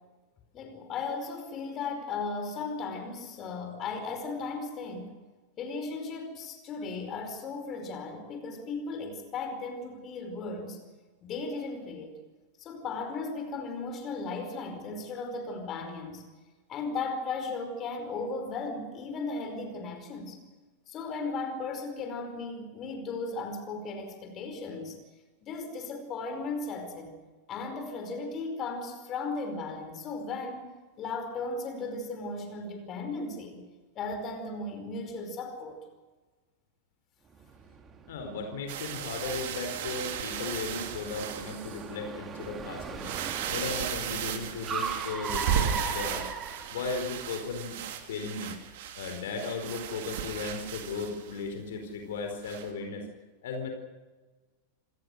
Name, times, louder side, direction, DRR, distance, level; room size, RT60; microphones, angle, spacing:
voice 1, 0.5-5.1 5.6-10.8 11.2-12.2 12.6-16.2 16.7-20.4 20.9-25.0 25.4-27.1 27.5-33.6 33.9-35.8, left 3 dB, 30° left, 6 dB, 4.9 m, -36 dB
Car, 37.4-47.3, right 5 dB, 25° right, 2.4 m, -39 dB
voice 2, 38.1-43.1 43.5-46.3 46.7-47.8 48.1-48.5 49.0-53.1 53.4-53.7, left 4 dB, 60° left, 5 dB, 4.3 m, -36 dB
sound 1, 38.7-41.9 42.4-42.5 42.9-51.5 52.4-52.7, right 9 dB, 50° right, 2.9 m, -35 dB
27.5 x 19.5 x 6.6 m, 1.3 s
figure-of-eight pair, 90°, 0 cm